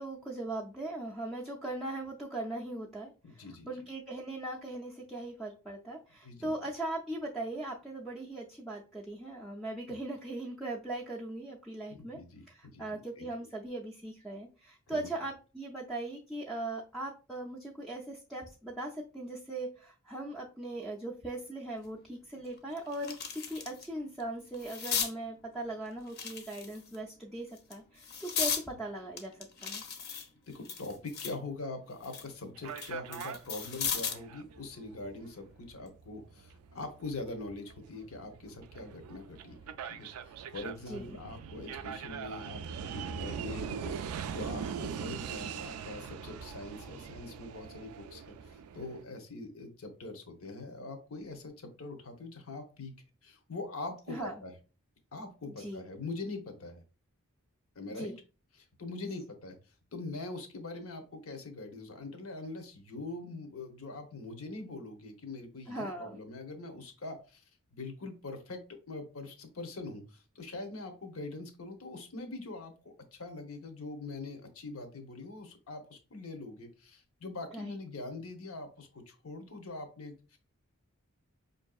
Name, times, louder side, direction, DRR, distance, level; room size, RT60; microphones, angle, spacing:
voice 1, 0.0-12.2 12.5-29.8 40.9-41.2 54.1-54.3 55.6-55.8 57.9-58.1 65.7-66.2 77.5-77.8, right 2 dB, ahead, -3 dB, 0.4 m, -39 dB
voice 2, 3.2-3.7 6.2-6.5 11.9-13.3 14.9-15.1 30.5-52.9 53.2-54.5 55.1-56.8 57.7-58.1 58.6-59.6 59.9-67.4 67.7-68.6 68.9-80.4, left 2 dB, 75° left, 5 dB, 0.8 m, -43 dB
sound 1, 21.8-21.9 22.4-23.9 24.2-25.1 26.1-27.0 27.6-28.6 29.2-31.4 31.8-34.3 35.7-35.9, left 6 dB, 45° left, 0.6 m, -36 dB
sound 2, 32.6-49.0, right 7 dB, 80° right, 0.3 m, -42 dB
5.2 x 2.6 x 2.3 m, 0.34 s
head